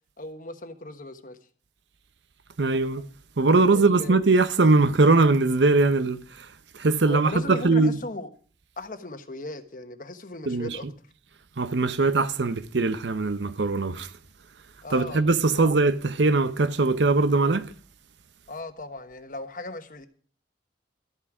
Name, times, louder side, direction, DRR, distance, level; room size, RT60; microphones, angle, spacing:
voice 1, 0.2-1.4 3.7-4.2 7.0-8.3 8.8-10.9 14.8-15.2 15.5-15.8 18.5-20.1, left 2 dB, 50° left, 1.2 m, -37 dB
voice 2, 2.6-3.1 3.4-6.5 6.7-8.0 10.5-10.8 11.6-14.1 14.9-17.7, right 3 dB, 90° right, 0.8 m, -21 dB
13.0 x 8.6 x 6.0 m
head